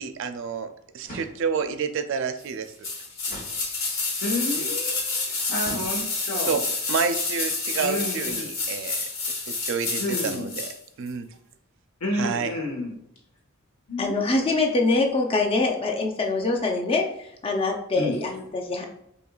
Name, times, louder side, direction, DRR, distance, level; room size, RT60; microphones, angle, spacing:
voice 1, 0.0-2.9 4.5-4.6 6.5-6.6 6.9-9.0 9.5-10.7 11.0-11.3 12.1-12.5, right 5 dB, 60° right, 9 dB, 0.4 m, -29 dB
sound 1, 1.0-1.8 3.2-4.2 5.6-6.4, equal, 45° left, 1.0 m, -43 dB
sound 2, 2.8-10.8 11.1-11.2, left 3 dB, 65° left, 1.1 m, -29 dB
voice 2, 4.2-6.6 7.7-8.5 10.0-10.5 12.0-12.9 13.9-14.2 18.0-18.1, left 1 dB, 85° left, -2 dB, 1.3 m, -30 dB
voice 3, 14.0-18.9, left 3 dB, 25° left, 2 dB, 0.5 m, -24 dB
4.4 x 2.7 x 2.3 m, 0.78 s
head